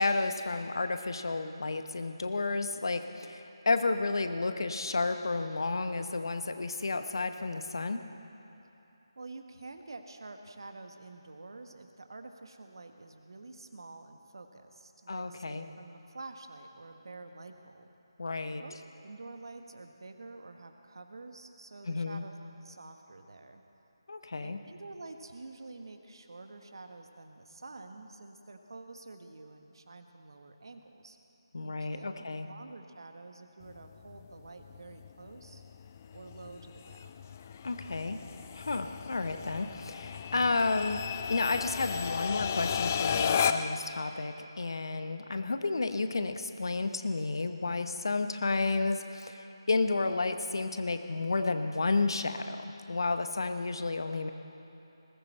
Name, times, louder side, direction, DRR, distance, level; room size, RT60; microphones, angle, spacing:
voice 1, 0.0-8.0 15.1-15.7 18.2-18.6 21.9-22.2 24.1-24.6 31.5-32.5 37.6-38.2 38.5-41.0 41.3-54.3, left 3 dB, 60° left, 8 dB, 1.0 m, -31 dB
voice 2, 9.1-17.9 18.6-22.3 22.6-23.6 24.4-31.2 31.6-35.6 36.1-37.2, right 3 dB, 60° right, 5 dB, 1.4 m, -48 dB
sound 1, 33.6-43.9, left 7 dB, 30° left, 0.4 m, -35 dB
20.5 x 16.0 x 4.4 m, 2.9 s
figure-of-eight pair, 155°, 3 cm